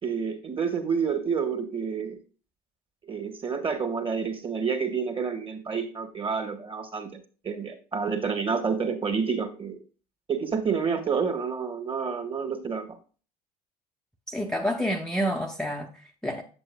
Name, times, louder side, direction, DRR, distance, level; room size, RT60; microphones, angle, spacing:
voice 1, 0.0-2.2 3.0-7.2 7.4-9.8 10.3-12.9, right 6 dB, 25° right, 1.5 m, -29 dB
voice 2, 14.3-16.4, equal, 5° left, 0.7 m, -29 dB
7.8 x 7.4 x 2.2 m
hypercardioid pair, 65°, 20 cm